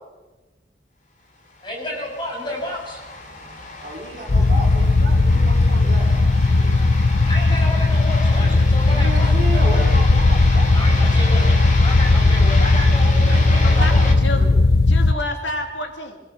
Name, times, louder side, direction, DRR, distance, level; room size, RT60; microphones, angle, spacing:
sound 1, 1.6-14.1, left 2 dB, 40° left, 3.0 m, -32 dB
voice 1, 1.6-3.0 7.3-9.8 10.7-14.1, left 1 dB, 25° left, -2 dB, 6.8 m, -31 dB
voice 2, 3.8-6.7 8.9-11.5 13.3-14.6, right 1 dB, 40° right, 0 dB, 4.7 m, -33 dB
sound 2, 4.3-15.1, left 2 dB, 60° left, 0.7 m, -16 dB
voice 3, 13.6-14.5 14.8-16.2, left 1 dB, 80° left, 4 dB, 2.5 m, -29 dB
25.0 x 16.5 x 7.0 m, 1.2 s
head